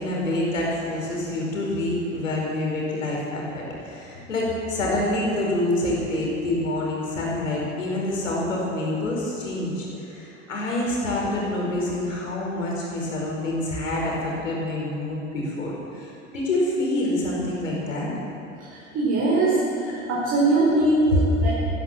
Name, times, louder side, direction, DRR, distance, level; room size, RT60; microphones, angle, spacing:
voice 1, 0.0-18.1 19.9-20.0, left 1 dB, 85° left, -3 dB, 4.9 m, -27 dB
voice 2, 18.6-19.6 20.1-21.5, right 2 dB, 40° right, -6 dB, 5.0 m, -21 dB
14.5 x 13.5 x 7.4 m, 2.7 s
hypercardioid pair, 80°, 38 cm